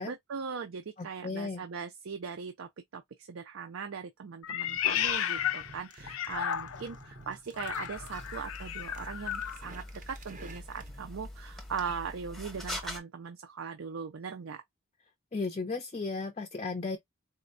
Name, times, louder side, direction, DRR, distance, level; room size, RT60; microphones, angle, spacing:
voice 1, 0.0-14.6, right 6 dB, 85° right, 0.5 m, -40 dB
voice 2, 1.2-1.6 15.3-17.0, left 3 dB, 30° left, 0.4 m, -34 dB
Meow, 4.4-7.0 7.5-9.6, left 10 dB, 90° left, 0.4 m, -33 dB
sound 1, 4.6-11.1, right 3 dB, 40° right, 0.6 m, -52 dB
sound 2, 7.9-13.0, left 1 dB, ahead, 0.8 m, -43 dB
4.2 x 2.2 x 2.5 m
head